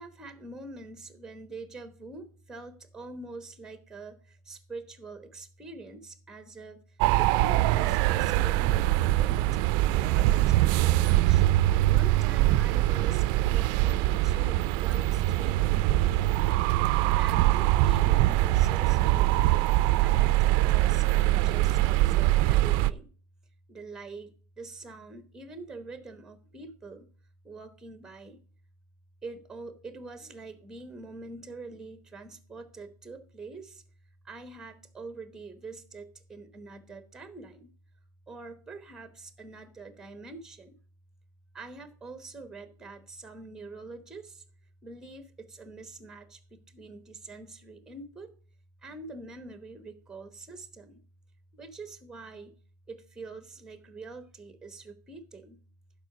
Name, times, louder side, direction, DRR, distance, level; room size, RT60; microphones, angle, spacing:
voice 1, 0.0-9.5 10.0-11.4 11.9-16.6 17.2-23.1 23.7-27.1 27.4-28.4 29.2-33.8 34.2-37.7 38.3-40.8 41.5-44.4 44.8-48.3 48.8-51.0 51.5-52.5 52.9-55.6, right 3 dB, 5° right, 10 dB, 1.0 m, -45 dB
sound 1, 7.0-22.9, right 16 dB, 60° right, 0.4 m, -23 dB
11.5 x 4.8 x 4.9 m, 0.41 s
cardioid pair, 160°, 9 cm